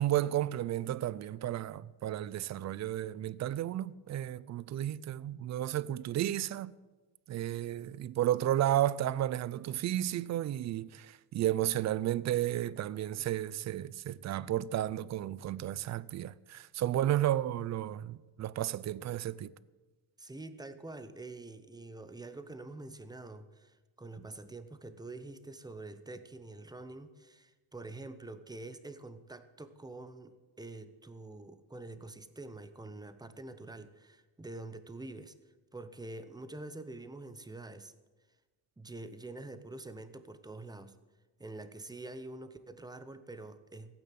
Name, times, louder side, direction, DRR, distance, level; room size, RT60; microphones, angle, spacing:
voice 1, 0.0-6.7 7.3-19.5, right 12 dB, 40° right, 0.4 m, -32 dB
voice 2, 20.2-35.3 35.7-37.9 38.8-41.0 41.4-43.9, right 2 dB, 10° right, 0.7 m, -46 dB
16.0 x 9.0 x 7.6 m
cardioid pair, 135°, 47 cm